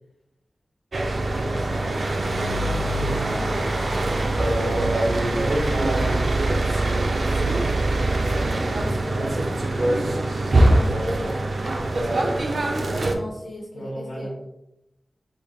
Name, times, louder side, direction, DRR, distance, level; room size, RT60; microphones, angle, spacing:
sound 1, 0.9-13.1, right 2 dB, 70° right, 0.4 m, -23 dB
voice 1, 1.2-2.0 4.9-6.5 7.3-10.2 10.5-10.9 11.9-12.4 13.7-14.3, equal, 85° left, -4 dB, 1.1 m, -35 dB
voice 2, 3.2-3.9 10.7-11.4 13.1-14.3, left 1 dB, 65° left, -3 dB, 0.6 m, -36 dB
3.5 x 3.2 x 2.3 m, 0.90 s
cardioid pair, 40°, 0 cm